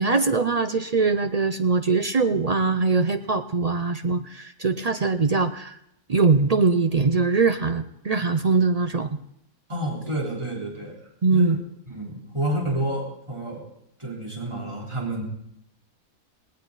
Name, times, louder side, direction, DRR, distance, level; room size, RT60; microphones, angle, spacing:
voice 1, 0.0-5.7 6.1-9.1 11.2-11.6, right 4 dB, 65° right, 9 dB, 0.3 m, -22 dB
voice 2, 9.7-11.0 11.3-11.6 11.9-13.7 14.0-15.2, right 1 dB, 20° right, -2 dB, 3.8 m, -29 dB
18.0 x 18.0 x 4.0 m, 0.74 s
omnidirectional pair, 1.6 m